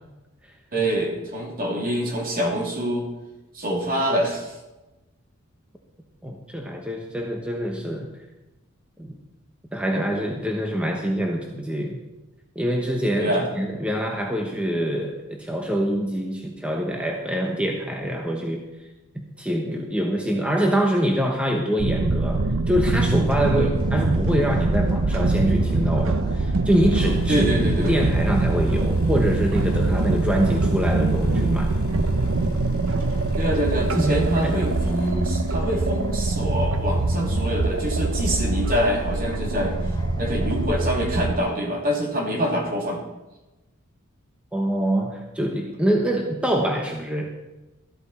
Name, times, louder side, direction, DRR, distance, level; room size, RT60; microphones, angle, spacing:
voice 1, 0.7-3.0 3.5-4.5 13.2-13.4 23.5-23.7 27.3-27.9 33.4-39.8 40.2-43.0, equal, 45° right, 0 dB, 3.0 m, -25 dB
voice 2, 6.2-8.1 9.0-9.1 9.7-12.0 12.5-18.7 19.4-27.5 27.8-31.8 33.9-34.6 44.5-47.3, equal, 5° right, 1 dB, 1.1 m, -25 dB
sound 1, 21.8-41.4, right 2 dB, 65° right, 0.8 m, -23 dB
sound 2, 23.0-40.7, equal, 20° left, 1.4 m, -40 dB
sound 3, 27.0-36.2 36.6-36.9 37.8-37.9, left 1 dB, 70° left, 2.6 m, -43 dB
14.0 x 12.5 x 4.3 m, 1.0 s
head